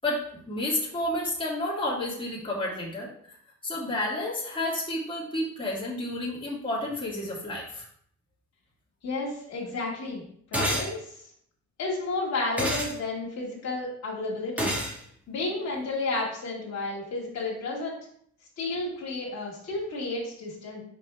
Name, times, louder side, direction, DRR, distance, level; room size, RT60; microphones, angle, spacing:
voice 1, 0.5-3.1 3.6-7.8, left 1 dB, 15° left, -6 dB, 2.3 m, -30 dB
voice 2, 9.0-10.2 10.5-11.2 11.8-14.7 15.3-18.0 18.6-20.8, left 3 dB, 60° left, -4 dB, 2.2 m, -32 dB
sound 1, 10.5-10.9 12.6-12.9 14.6-14.9, equal, 5° right, 1.7 m, -27 dB
5.3 x 5.3 x 3.5 m, 0.65 s
cardioid pair, 90°, 30 cm